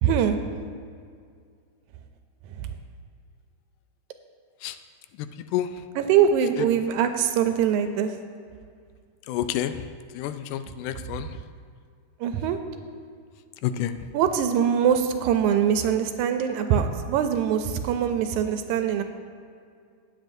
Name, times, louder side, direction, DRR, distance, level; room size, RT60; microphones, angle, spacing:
voice 1, 0.0-0.4 2.6-2.7 6.0-8.2 12.2-12.6 14.1-19.0, right 8 dB, 80° right, 7 dB, 1.9 m, -23 dB
voice 2, 5.2-5.7 9.3-9.9 10.1-11.3 13.6-14.1, left 11 dB, 85° left, 10 dB, 2.1 m, -29 dB
18.0 x 7.7 x 2.7 m, 2.2 s
omnidirectional pair, 3.6 m